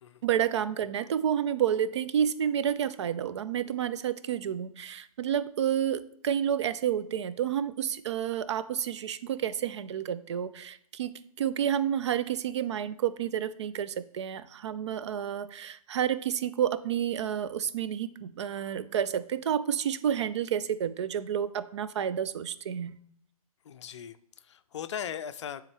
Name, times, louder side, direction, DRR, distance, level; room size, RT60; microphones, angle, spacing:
voice 1, 0.2-11.1 11.4-23.0, right 9 dB, 50° right, 14 dB, 0.5 m, -30 dB
voice 2, 23.6-25.6, left 8 dB, 50° left, 13 dB, 0.4 m, -39 dB
9.6 x 3.8 x 3.2 m, 0.67 s
figure-of-eight pair, 125°, 19 cm